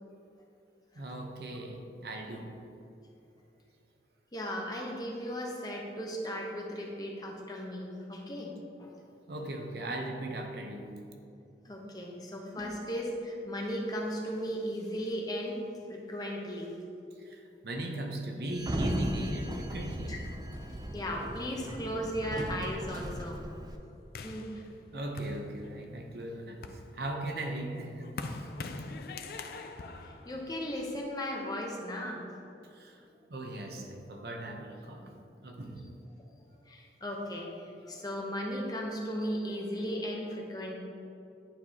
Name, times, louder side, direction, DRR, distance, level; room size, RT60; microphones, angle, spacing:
voice 1, 0.9-2.6 9.3-11.0 17.2-20.2 20.6-20.8 24.9-28.5 32.6-33.0 33.3-35.1 35.4-35.9, right 1 dB, 60° right, 2 dB, 0.7 m, -39 dB
voice 2, 4.3-8.9 11.6-15.6 15.9-16.8 20.1-20.2 20.9-23.4 24.2-24.6 28.1-28.4 30.0-32.2 35.7-35.8 36.6-40.7, equal, 20° left, -1 dB, 0.8 m, -36 dB
Sliding door, 18.5-23.8, right 1 dB, 20° right, 0.4 m, -36 dB
sound 1, 24.1-26.0 26.4-31.1, left 3 dB, 55° left, 0.4 m, -43 dB
10.5 x 4.7 x 2.8 m, 2.7 s
head